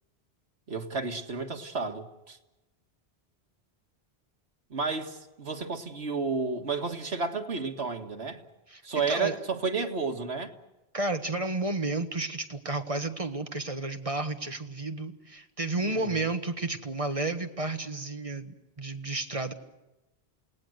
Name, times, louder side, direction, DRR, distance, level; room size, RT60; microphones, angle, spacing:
voice 1, 0.7-2.4 4.7-8.4 8.8-10.5 15.8-16.3, right 4 dB, 80° right, 2.1 m, -32 dB
voice 2, 8.7-9.3 10.9-19.5, right 2 dB, 30° right, 1.6 m, -32 dB
29.0 x 18.5 x 8.0 m
omnidirectional pair, 1.1 m